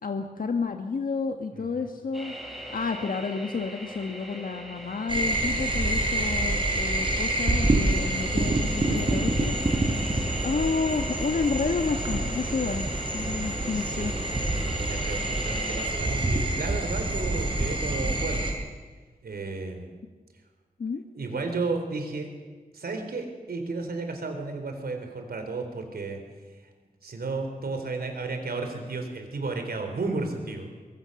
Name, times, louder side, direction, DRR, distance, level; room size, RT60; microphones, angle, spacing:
voice 1, 0.0-12.9 13.1-14.1 20.8-21.0, left 4 dB, 65° left, 5 dB, 1.4 m, -30 dB
voice 2, 1.5-1.9 10.1-10.5 13.7-14.3 14.7-18.5 19.2-19.9 21.1-22.3 22.7-26.2 27.0-30.9, right 3 dB, 85° right, 5 dB, 4.0 m, -33 dB
sound 1, 2.1-15.9, equal, ahead, 5.7 m, -40 dB
sound 2, 5.1-18.5, right 1 dB, 35° right, 4.7 m, -27 dB
24.0 x 22.5 x 7.0 m, 1.4 s
wide cardioid pair, 115°, 15 cm